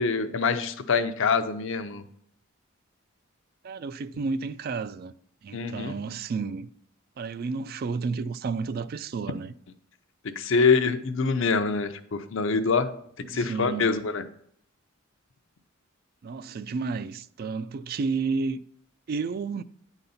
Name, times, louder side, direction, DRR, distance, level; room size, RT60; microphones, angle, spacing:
voice 1, 0.0-2.0 5.5-6.0 10.2-12.9 13.3-14.3, left 5 dB, 65° left, 0.6 m, -25 dB
voice 2, 3.6-5.1 5.4-6.7 7.2-9.5 13.2-13.9 16.2-18.6 19.1-19.6, right 4 dB, 45° right, 0.3 m, -31 dB
9.4 x 4.0 x 5.6 m
head